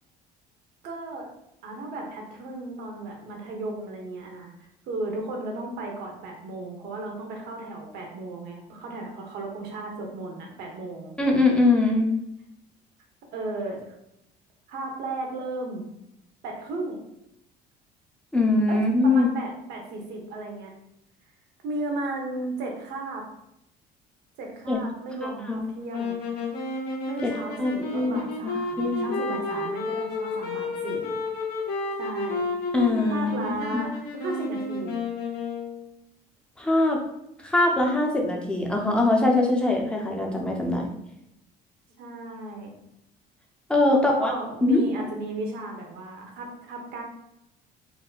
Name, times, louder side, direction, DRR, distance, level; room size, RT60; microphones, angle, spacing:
voice 1, 0.8-1.3 1.6-4.5 4.9-11.1 13.3-13.8 14.7-15.9 16.4-17.0 18.7-20.7 21.6-23.2 24.4-26.2 27.1-31.1 32.0-32.5 33.1-33.9 34.2-35.0 42.0-42.7 43.9-47.0, right 2 dB, 75° right, 1 dB, 1.2 m, -35 dB
voice 2, 11.2-12.1 18.3-19.3 24.7-24.8 25.2-25.6 27.2-27.3 27.6-28.5 28.8-29.1 32.7-33.3 33.7-33.9 36.6-37.0 37.4-40.9 43.7-44.3 44.6-44.8, left 2 dB, 5° left, 0 dB, 0.7 m, -22 dB
sound 1, 25.9-35.9, left 3 dB, 75° left, 1.4 m, -31 dB
4.7 x 2.1 x 4.0 m, 0.82 s
cardioid pair, 140°, 17 cm